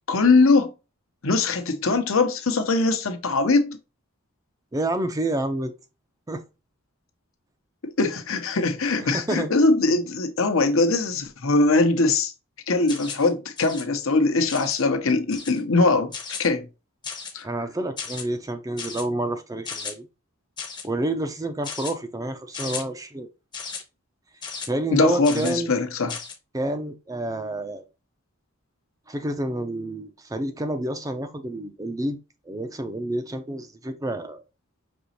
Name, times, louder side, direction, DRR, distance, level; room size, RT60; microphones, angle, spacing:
voice 1, 0.1-0.7 1.2-3.8 8.0-12.3 12.7-16.1 16.4-16.7 17.3-17.5 24.9-26.2, left 3 dB, 70° left, 0.8 m, -21 dB
voice 2, 4.7-5.7 6.3-6.4 9.0-9.5 17.4-20.1 20.8-23.3 24.7-25.7 26.5-27.8 29.1-32.2 32.5-34.4, right 1 dB, 15° right, 0.5 m, -29 dB
sound 1, 12.9-13.3 13.6-13.8 14.5-14.8 15.3-15.6 16.1-16.5 17.0-17.4 18.0-18.2 18.8-19.0 19.6-19.9 20.6-20.9 21.6-21.9 22.5-22.8 23.5-23.8 24.4-24.7 25.2-25.6 26.1-26.3, left 5 dB, 20° left, 0.8 m, -35 dB
5.3 x 3.0 x 2.8 m
head